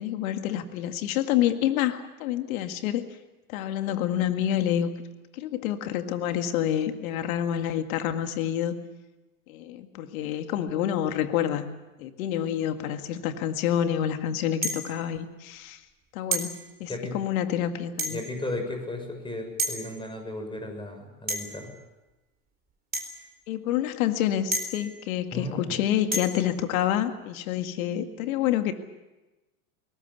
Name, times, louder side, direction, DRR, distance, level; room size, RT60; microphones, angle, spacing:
voice 1, 0.0-3.1 3.5-4.9 5.3-8.8 9.5-11.7 12.0-15.8 16.1-18.2 23.5-28.7, left 11 dB, 70° left, 8 dB, 2.0 m, -28 dB
sound 1, 14.6-15.0 16.3-16.6 18.0-18.4 19.6-19.8 21.3-21.7 22.9-23.1 24.5-24.9 26.1-26.4, right 2 dB, 20° right, 3.9 m, -30 dB
voice 2, 18.1-21.7 25.3-25.7, left 1 dB, 10° left, 6 dB, 6.5 m, -35 dB
22.0 x 19.0 x 8.3 m, 1.1 s
hypercardioid pair, 100°, 43 cm